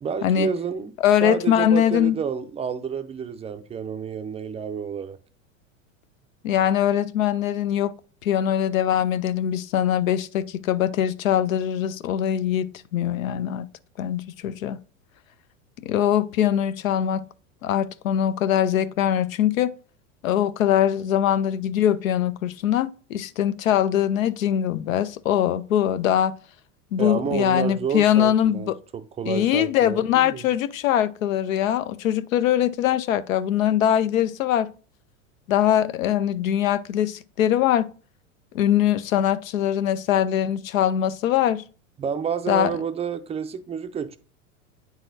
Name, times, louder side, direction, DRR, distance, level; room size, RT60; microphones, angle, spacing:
voice 1, 0.0-0.9 1.2-5.2 27.0-30.4 42.0-44.2, right 7 dB, 15° right, 0.4 m, -29 dB
voice 2, 1.0-2.2 6.4-7.9 8.2-13.7 14.0-14.8 15.8-17.2 17.6-19.7 20.2-26.3 26.9-28.8 29.3-34.7 35.5-37.9 38.5-41.6 42.5-42.7, left 10 dB, 85° left, 0.6 m, -22 dB
8.9 x 4.0 x 2.6 m
hypercardioid pair, 105°, 39 cm